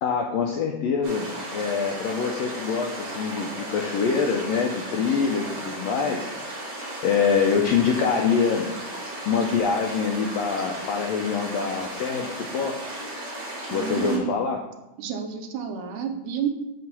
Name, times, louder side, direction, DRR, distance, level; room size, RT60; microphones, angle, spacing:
voice 1, 0.0-6.3 7.0-8.7 9.2-12.8 13.7-14.6, left 6 dB, 85° left, 2 dB, 1.4 m, -25 dB
sound 1, 1.0-14.2, right 1 dB, 35° right, 1.1 m, -35 dB
voice 2, 13.7-14.3 15.0-16.5, right 8 dB, 85° right, 4 dB, 2.2 m, -30 dB
7.1 x 3.1 x 5.9 m, 0.97 s
omnidirectional pair, 3.5 m